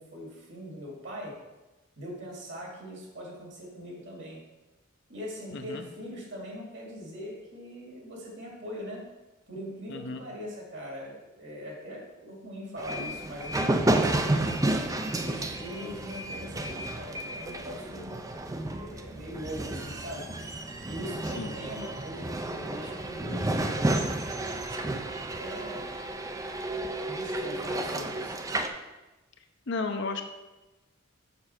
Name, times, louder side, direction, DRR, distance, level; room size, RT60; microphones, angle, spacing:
voice 1, 0.0-1.4 2.0-4.4 5.1-9.0 9.5-14.5 15.2-20.3 20.8-24.5 25.3-26.0 27.0-28.4, equal, 60° right, -2 dB, 2.5 m, -41 dB
voice 2, 5.5-5.8 9.9-10.2 21.3-21.5 29.7-30.2, left 3 dB, 55° left, 6 dB, 0.7 m, -33 dB
sound 1, 12.8-28.7, right 1 dB, 15° right, 0.4 m, -31 dB
6.9 x 6.5 x 4.4 m, 1.1 s
head